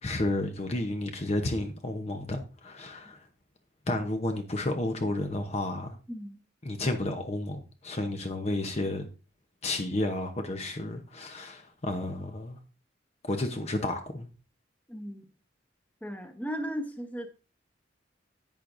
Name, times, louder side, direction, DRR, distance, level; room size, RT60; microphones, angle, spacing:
voice 1, 0.0-3.3 3.9-6.0 6.6-9.1 9.6-12.6 13.2-14.3, left 2 dB, 35° left, 0.9 m, -31 dB
voice 2, 6.1-6.4 14.9-15.2 16.0-17.3, equal, 10° left, 1.1 m, -36 dB
11.0 x 8.6 x 2.6 m
head